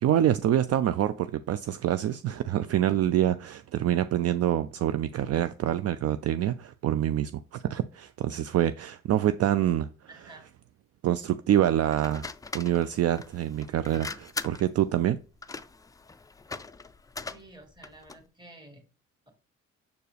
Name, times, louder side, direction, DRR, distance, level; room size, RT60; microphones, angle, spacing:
voice 1, 0.0-9.9 11.0-12.3 12.5-15.2, right 11 dB, 55° right, 0.4 m, -26 dB
voice 2, 10.1-10.5 17.3-18.8, right 2 dB, 15° right, 2.0 m, -50 dB
sound 1, 11.9-18.3, left 4 dB, 10° left, 0.3 m, -41 dB
6.6 x 4.5 x 3.3 m
cardioid pair, 90°, 30 cm